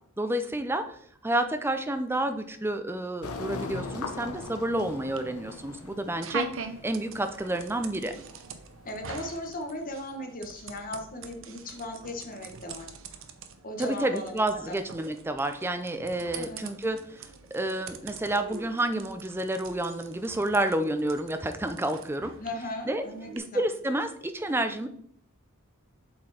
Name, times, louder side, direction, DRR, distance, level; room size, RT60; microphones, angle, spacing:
voice 1, 0.2-1.0 1.2-6.5 6.8-8.2 13.8-22.3 22.9-23.0 23.3-24.9, right 1 dB, 10° right, 8 dB, 0.5 m, -29 dB
sound 1, 3.2-8.9, left 3 dB, 85° left, 0.8 m, -40 dB
sound 2, 3.8-23.4, right 5 dB, 60° right, 0.7 m, -44 dB
voice 2, 8.8-12.9 13.6-14.8 16.3-16.6 22.4-23.6, left 1 dB, 40° left, 4 dB, 1.3 m, -37 dB
7.6 x 4.5 x 4.2 m, 0.66 s
head